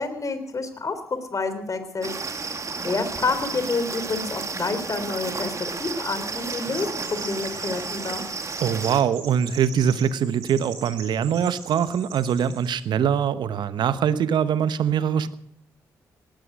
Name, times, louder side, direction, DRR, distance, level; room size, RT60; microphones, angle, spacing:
voice 1, 0.0-2.1 2.4-5.5 5.8-8.2, left 3 dB, 40° left, 10 dB, 3.6 m, -28 dB
sound 1, 2.0-9.0, right 4 dB, 40° right, 2.1 m, -32 dB
Chirp tweet, 6.2-12.8, right 5 dB, 85° right, 5.3 m, -43 dB
voice 2, 8.6-15.4, right 8 dB, 65° right, 15 dB, 1.1 m, -23 dB
19.5 x 11.5 x 6.4 m, 0.73 s
hypercardioid pair, 40°, 8 cm